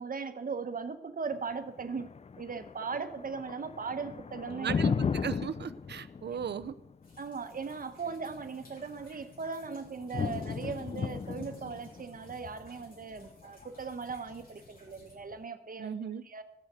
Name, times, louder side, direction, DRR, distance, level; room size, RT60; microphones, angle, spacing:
voice 1, 0.0-4.8 7.2-16.0 16.2-16.4, right 5 dB, 55° right, 9 dB, 1.2 m, -38 dB
Thunder, 1.3-15.3, left 5 dB, 40° left, 0.4 m, -37 dB
voice 2, 4.5-6.8 15.8-16.2, right 7 dB, 85° right, 12 dB, 0.7 m, -37 dB
sound 1, 7.0-15.2, left 2 dB, 55° left, 3.9 m, -60 dB
15.0 x 6.5 x 8.2 m, 0.87 s
wide cardioid pair, 85°, 17 cm